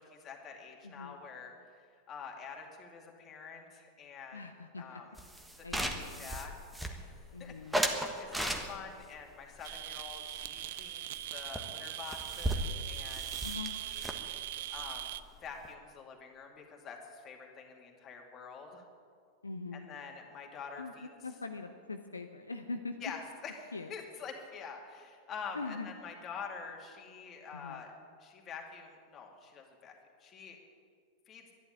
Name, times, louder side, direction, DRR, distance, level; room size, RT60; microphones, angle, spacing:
voice 1, 0.2-1.5 2.1-3.6 4.0-4.4 4.8-5.0 5.7-5.9 6.2-6.5 7.4-7.5 8.2-11.0 11.3-13.2 13.9-14.0 14.7-15.0 15.4-16.5 16.8-17.0 17.2-17.4 17.8-18.7 19.9-21.1 23.0-23.5 23.9-24.8 25.3-27.9 28.5-28.9 29.1-29.3 29.5-29.9 30.3-30.6 31.3-31.4, left 6 dB, 25° left, 1 dB, 2.4 m, -45 dB
voice 2, 0.8-1.2 4.3-5.0 5.6-6.3 7.3-7.8 13.4-13.7 19.4-19.9 20.8-23.0 23.7-23.9 25.5-25.9 27.5-27.8, left 3 dB, 80° left, 5 dB, 0.8 m, -42 dB
sound 1, 5.2-7.3 7.7-9.0 9.6-10.9 11.1-11.3 11.6-11.7 11.9-15.7, right 1 dB, 5° right, 1.4 m, -37 dB
sound 2, 9.6-15.2, right 13 dB, 55° right, 0.5 m, -41 dB
11.5 x 11.0 x 10.0 m, 2.1 s
figure-of-eight pair, 90°, 0 cm